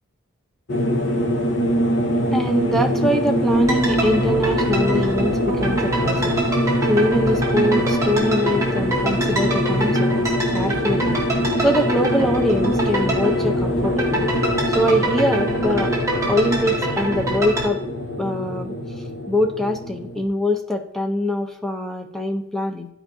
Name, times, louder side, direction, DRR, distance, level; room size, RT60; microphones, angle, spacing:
sound 1, 0.7-20.3, equal, 55° left, 0.9 m, -23 dB
voice 1, 2.3-6.4 6.9-11.2 11.6-14.3 14.7-15.9 16.3-17.8 18.2-18.7 19.3-22.9, equal, ahead, 4 dB, 0.6 m, -23 dB
sound 2, 3.5-17.7, right 1 dB, 15° right, 1.1 m, -26 dB
11.0 x 4.5 x 2.7 m, 0.84 s
head